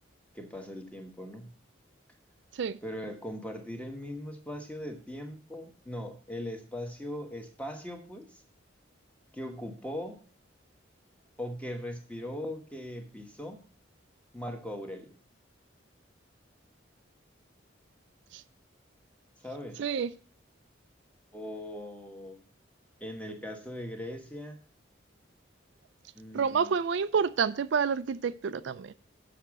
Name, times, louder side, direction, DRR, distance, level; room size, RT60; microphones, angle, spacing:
voice 1, 0.3-1.5 2.8-8.4 9.3-10.2 11.4-13.6 14.3-15.2 19.4-19.8 21.3-22.4 23.0-24.6 26.1-26.7, left 1 dB, 5° left, 1.2 m, -40 dB
voice 2, 19.8-20.1 26.3-28.9, right 6 dB, 65° right, 0.4 m, -28 dB
6.9 x 5.9 x 7.3 m
head